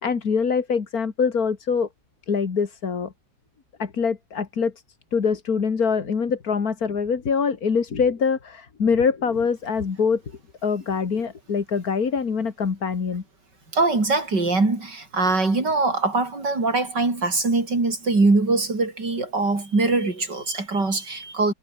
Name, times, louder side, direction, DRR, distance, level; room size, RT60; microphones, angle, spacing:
voice 1, 0.0-1.9 2.3-3.1 3.8-4.7 5.1-10.2 10.6-13.2, left 5 dB, 55° left, 2.5 m, -24 dB
voice 2, 13.7-21.5, right 3 dB, 80° right, 5.7 m, -22 dB
omnidirectional pair, 1.8 m